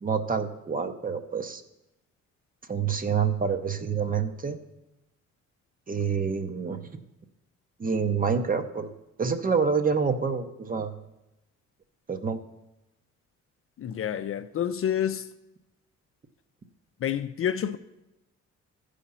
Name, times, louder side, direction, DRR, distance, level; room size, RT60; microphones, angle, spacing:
voice 1, 0.0-1.6 2.7-4.6 5.9-6.8 7.8-8.9 9.2-10.9 12.1-12.4, right 6 dB, 30° right, 0.8 m, -27 dB
voice 2, 13.8-15.3 17.0-17.8, left 9 dB, 45° left, 0.5 m, -28 dB
14.0 x 5.0 x 5.6 m
cardioid pair, 90°, 30 cm